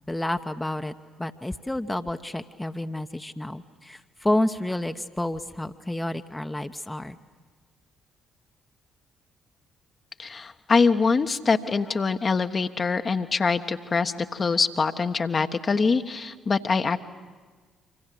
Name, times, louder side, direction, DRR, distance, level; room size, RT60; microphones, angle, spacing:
voice 1, 0.1-7.2, left 1 dB, 10° left, 7 dB, 1.1 m, -30 dB
voice 2, 10.2-17.0, left 4 dB, 40° left, 7 dB, 1.3 m, -24 dB
28.5 x 25.5 x 7.8 m, 1.4 s
figure-of-eight pair, 45°, 0 cm